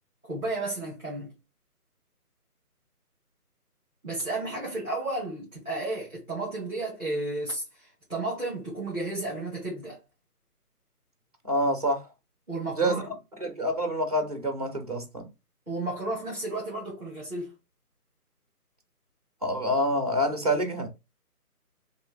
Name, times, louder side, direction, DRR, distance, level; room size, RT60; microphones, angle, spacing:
voice 1, 0.2-1.3 4.0-10.0 12.5-13.1 15.7-17.5, right 2 dB, 5° left, 1.4 m, -33 dB
voice 2, 11.5-12.1 12.8-13.0 13.4-15.2 19.4-20.9, equal, 25° right, 0.7 m, -27 dB
4.7 x 3.1 x 2.2 m
figure-of-eight pair, 155°, 47 cm